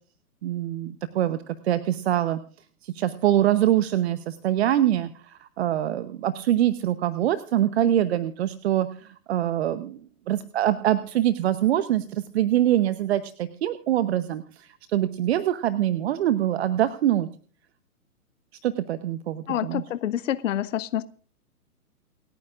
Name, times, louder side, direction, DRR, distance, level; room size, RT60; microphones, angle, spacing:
voice 1, 0.4-2.4 2.8-17.3 18.6-19.8, right 12 dB, 45° right, 14 dB, 0.9 m, -24 dB
voice 2, 19.5-21.0, left 11 dB, 55° left, 16 dB, 0.7 m, -27 dB
29.0 x 9.7 x 2.5 m, 0.42 s
hypercardioid pair, 130°, 45 cm